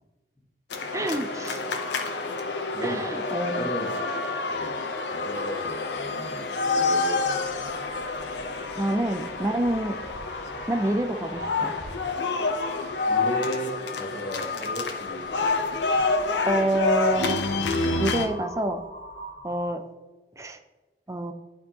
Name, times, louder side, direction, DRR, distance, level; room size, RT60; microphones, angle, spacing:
sound 1, 0.7-18.3, left 3 dB, 85° left, 0.7 m, -28 dB
voice 1, 0.9-1.6 2.8-3.7 8.8-9.9 10.7-11.8 16.5-17.4 18.0-18.8 19.4-19.8 20.4-20.6 21.1-21.3, right 1 dB, 15° right, 7 dB, 0.4 m, -27 dB
voice 2, 2.7-3.1 3.6-4.0 4.5-7.7 13.1-15.5, equal, 5° left, -13 dB, 2.2 m, -35 dB
Crow, 4.3-19.8, left 3 dB, 60° left, 1.4 m, -40 dB
11.0 x 4.5 x 2.9 m, 1.2 s
head